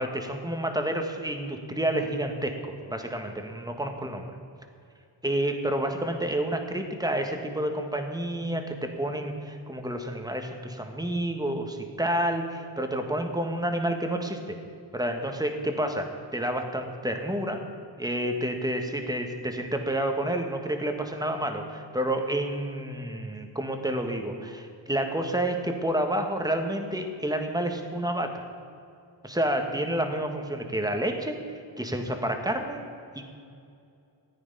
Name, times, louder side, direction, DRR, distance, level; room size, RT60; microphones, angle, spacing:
voice 1, 0.0-4.3 5.2-14.4 14.9-17.6 18.0-28.4 29.2-31.4 31.8-32.8, right 1 dB, 10° right, 4 dB, 1.5 m, -29 dB
14.0 x 9.3 x 5.5 m, 2.5 s
cardioid pair, 75°, 45 cm